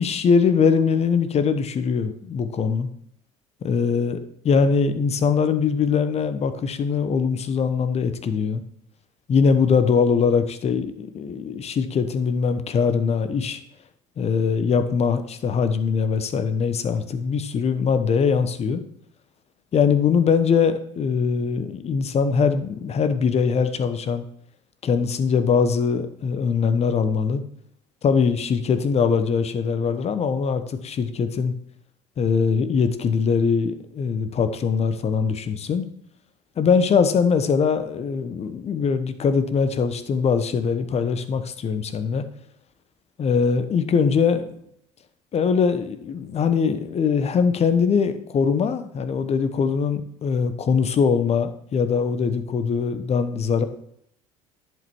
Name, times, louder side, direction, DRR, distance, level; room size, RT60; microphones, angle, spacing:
voice 1, 0.0-2.9 3.6-4.2 4.4-8.6 9.3-13.6 14.2-18.8 19.7-24.3 24.8-27.4 28.0-31.5 32.2-35.8 36.6-42.2 43.2-44.6 45.3-53.6, left 6 dB, 45° left, 10 dB, 1.1 m, -22 dB
10.5 x 5.4 x 4.5 m, 0.68 s
hypercardioid pair, 65°, 15 cm